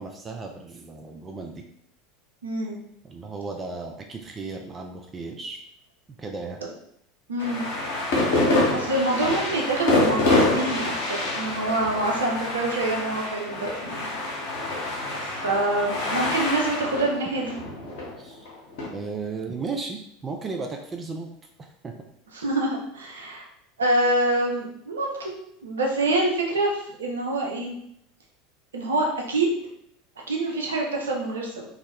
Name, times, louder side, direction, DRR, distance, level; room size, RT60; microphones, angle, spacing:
voice 1, 0.0-1.7 3.0-5.6 6.1-6.6 18.2-18.4 18.9-21.3 21.6-22.0, right 4 dB, 25° right, 3 dB, 0.3 m, -35 dB
voice 2, 2.4-2.8 7.3-7.6 8.7-14.4 15.2-17.6 22.3-23.5 23.8-25.3 25.6-27.8 28.7-29.6 30.3-31.7, right 2 dB, 75° right, 0 dB, 0.5 m, -26 dB
sound 1, 7.4-18.9, left 2 dB, 60° left, 0.8 m, -26 dB
2.3 x 2.1 x 3.3 m, 0.73 s
figure-of-eight pair, 80°, 0 cm